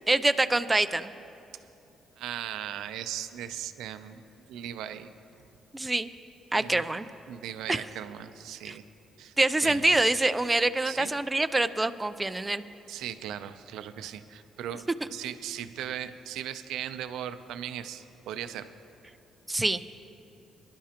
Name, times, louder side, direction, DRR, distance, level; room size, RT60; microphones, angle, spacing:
voice 1, 0.1-1.1 5.7-6.1 6.5-7.1 7.7-7.8 8.6-8.7 9.4-12.6 19.5-19.8, right 2 dB, 15° right, 11 dB, 0.5 m, -25 dB
voice 2, 2.2-4.2 4.5-5.1 6.5-6.8 7.3-8.8 9.2-9.3 9.6-9.8 10.8-11.1 12.9-14.8 15.1-18.7, right 10 dB, 85° right, 10 dB, 0.5 m, -38 dB
23.5 x 11.5 x 2.9 m, 2.8 s
cardioid pair, 90°, 0 cm